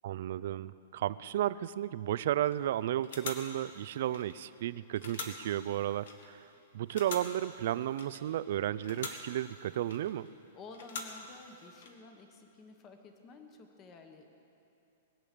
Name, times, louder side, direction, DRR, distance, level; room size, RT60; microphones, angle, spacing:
voice 1, 0.0-6.5 6.7-10.3, right 12 dB, 55° right, 17 dB, 0.4 m, -33 dB
sound 1, 2.5-2.7 3.0-4.6 4.9-6.5 6.9-8.5 8.7-10.3 10.7-11.9, left 4 dB, 65° left, 1.7 m, -45 dB
voice 2, 10.5-14.3, left 4 dB, 20° left, 5 dB, 1.1 m, -52 dB
21.0 x 8.8 x 6.7 m, 2.7 s
hypercardioid pair, 170°, 0 cm